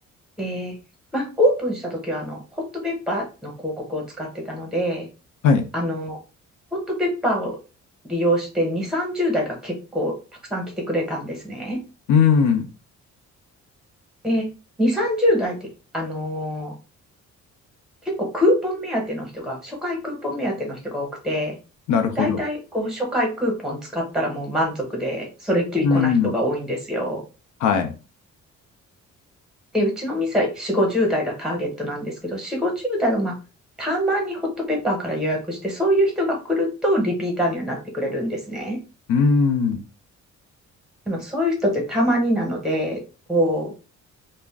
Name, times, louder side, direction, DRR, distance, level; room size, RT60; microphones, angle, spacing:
voice 1, 0.4-0.8 1.1-5.1 5.7-6.2 6.7-7.6 8.1-10.1 10.5-11.8 14.2-14.5 14.8-15.5 15.9-16.7 18.0-21.6 22.2-27.2 29.7-33.3 33.8-34.4 34.7-38.8 41.1-43.0 43.3-43.7, equal, ahead, 1 dB, 0.8 m, -24 dB
voice 2, 12.1-12.6 21.9-22.4 25.8-26.3 27.6-27.9 39.1-39.8, left 6 dB, 85° left, 5 dB, 0.6 m, -18 dB
2.4 x 2.1 x 3.4 m, 0.32 s
cardioid pair, 180°, 29 cm